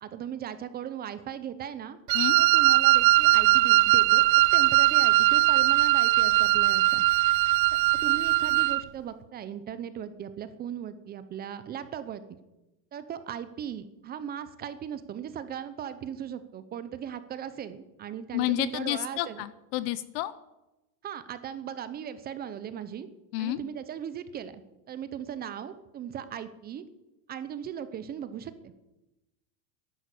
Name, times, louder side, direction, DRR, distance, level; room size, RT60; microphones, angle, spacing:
voice 1, 0.0-2.0 2.4-4.2 4.5-7.1 8.0-12.2 12.9-19.4 21.0-23.1 23.4-24.6 24.9-26.8 27.3-28.7, right 9 dB, 20° right, 13 dB, 0.6 m, -38 dB
Wind instrument woodwind instrument, 2.1-8.8, right 18 dB, 85° right, 0.6 m, -21 dB
voice 2, 18.3-20.3 23.3-23.6, left 16 dB, 35° left, 16 dB, 0.5 m, -30 dB
11.0 x 11.0 x 8.4 m, 0.97 s
supercardioid pair, 150°, 50 cm